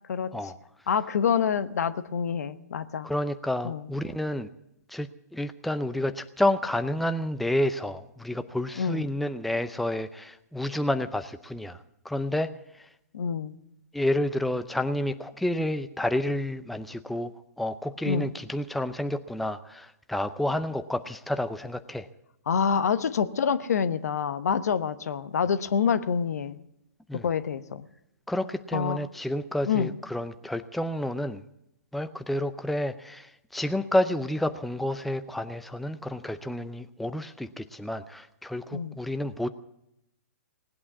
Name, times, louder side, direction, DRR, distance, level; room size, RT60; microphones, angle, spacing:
voice 1, 0.9-3.1 3.6-3.8 8.8-9.0 13.1-13.6 18.1-18.3 22.5-26.6 27.2-27.8 28.7-29.0 29.7-29.9 38.7-38.9, left 7 dB, 70° left, 13 dB, 1.0 m, -27 dB
voice 2, 3.0-4.5 4.9-12.5 12.8-12.9 13.9-22.1 27.1-27.3 28.3-31.4 31.9-39.5, left 1 dB, ahead, 9 dB, 0.5 m, -30 dB
18.5 x 8.6 x 8.3 m, 0.82 s
hypercardioid pair, 135°, 9 cm